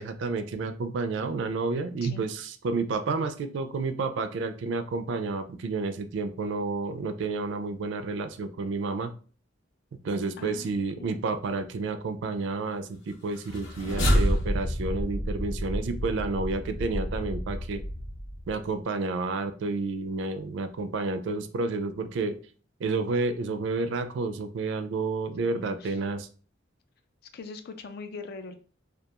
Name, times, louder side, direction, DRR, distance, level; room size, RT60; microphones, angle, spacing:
voice 1, 0.0-9.1 10.0-17.8 18.5-22.3 22.8-26.3, right 3 dB, 65° right, 9 dB, 0.3 m, -30 dB
voice 2, 10.4-11.2 25.5-26.0 27.3-28.6, left 4 dB, 50° left, 7 dB, 0.3 m, -42 dB
sound 1, 13.4-18.7, equal, 70° left, 0.7 m, -29 dB
2.3 x 2.2 x 2.8 m, 0.40 s
head